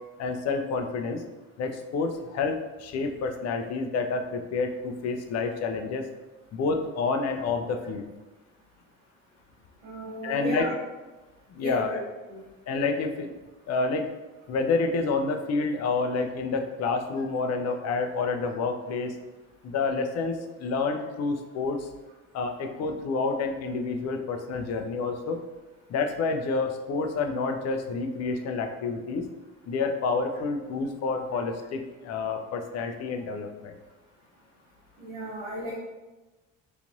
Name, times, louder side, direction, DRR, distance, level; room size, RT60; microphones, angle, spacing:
voice 1, 0.2-1.2 1.6-6.0 6.5-8.1 10.2-10.7 11.5-12.0 12.7-13.3 13.7-14.1 14.5-19.2 19.6-21.9 22.3-25.4 25.9-29.3 29.7-33.8, left 4 dB, 45° left, 5 dB, 0.5 m, -29 dB
voice 2, 9.8-10.7 11.6-11.8 12.3-12.4 35.0-35.7, equal, 85° right, -9 dB, 0.8 m, -35 dB
3.2 x 2.5 x 2.5 m, 1.1 s
hypercardioid pair, 55°, 38 cm